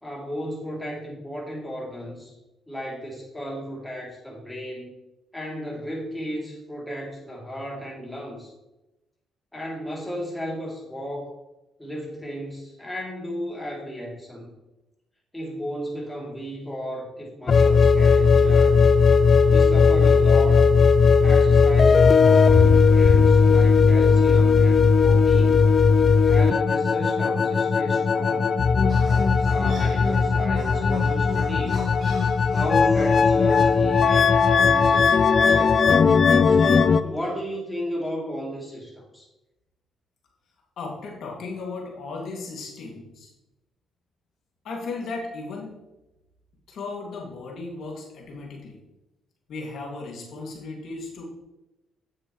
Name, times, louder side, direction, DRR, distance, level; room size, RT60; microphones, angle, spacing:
voice 1, 0.0-2.3 2.7-4.9 5.3-8.5 9.5-11.3 11.8-14.5 15.3-18.8 19.4-20.7 21.2-25.7 26.2-28.6 29.5-31.9 32.4-35.8 36.5-39.3, equal, 10° left, -3 dB, 3.1 m, -34 dB
sound 1, 17.5-37.0, left 5 dB, 45° left, 0.4 m, -17 dB
sound 2, 28.9-34.0, right 2 dB, 50° right, 2.2 m, -44 dB
voice 2, 40.8-43.3 44.6-45.7 46.7-48.8 49.5-51.3, left 3 dB, 70° left, -1 dB, 2.4 m, -35 dB
9.3 x 7.4 x 3.2 m, 0.98 s
cardioid pair, 90°, 0 cm